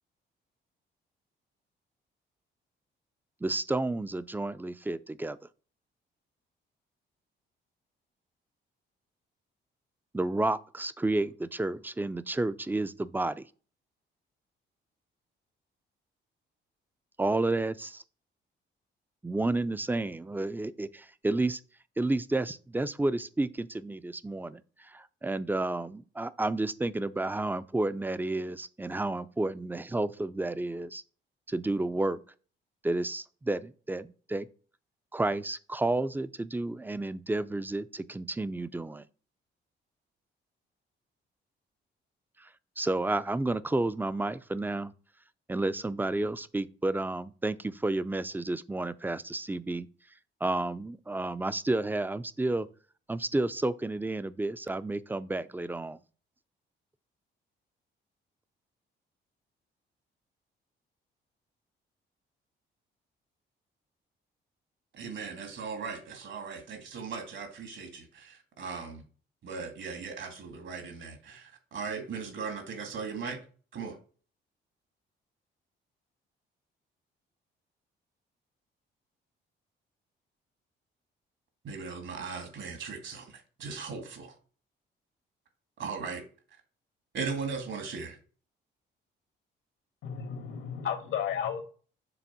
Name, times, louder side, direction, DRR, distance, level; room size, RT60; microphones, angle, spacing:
voice 1, 3.4-5.4 10.1-13.4 17.2-18.0 19.2-21.6 22.0-31.0 31.5-32.2 32.8-34.5 35.1-39.0 42.4-42.5 42.8-44.9 45.5-49.9 50.4-52.7 53.1-56.0, right 2 dB, 10° right, 0.5 m, -31 dB
voice 2, 64.9-69.0 69.4-73.4 73.7-74.0 81.6-84.3 85.8-86.2 87.1-88.2, right 5 dB, 70° right, 2.1 m, -38 dB
voice 3, 90.0-91.6, left 8 dB, 80° left, 1.5 m, -33 dB
7.0 x 3.6 x 6.0 m
cardioid pair, 90°, 20 cm